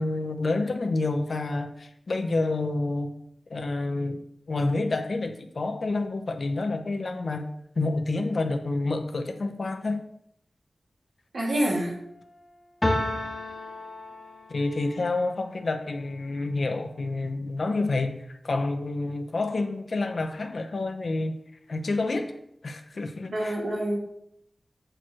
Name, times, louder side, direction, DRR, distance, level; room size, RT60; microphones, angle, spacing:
voice 1, 0.0-3.1 3.5-4.2 4.5-7.5 7.8-10.0 14.5-21.4 21.7-22.3 22.6-23.6, left 2 dB, 65° left, 0.9 m, -28 dB
voice 2, 11.3-12.0 23.3-24.0, right 1 dB, 80° right, 2.5 m, -26 dB
sound 1, 12.8-14.8, left 1 dB, 25° left, 1.4 m, -30 dB
7.8 x 4.6 x 6.2 m
wide cardioid pair, 85°, 0 cm